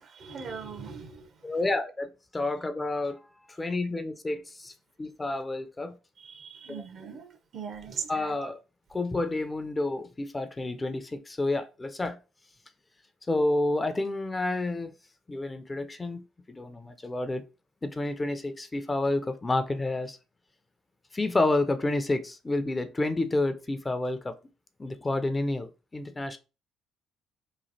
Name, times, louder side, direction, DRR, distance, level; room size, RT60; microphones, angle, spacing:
voice 1, 0.0-1.3 6.2-8.5, right 6 dB, 55° right, 0.9 m, -40 dB
voice 2, 1.4-3.2 3.6-4.7 5.0-5.9 6.7-6.8 8.1-8.6 8.9-12.2 13.3-14.9 15.3-16.2 16.5-17.4 17.8-20.2 21.1-24.3 24.8-26.4, left 2 dB, 25° left, 0.6 m, -29 dB
3.1 x 2.4 x 4.1 m
supercardioid pair, 60°, 0 cm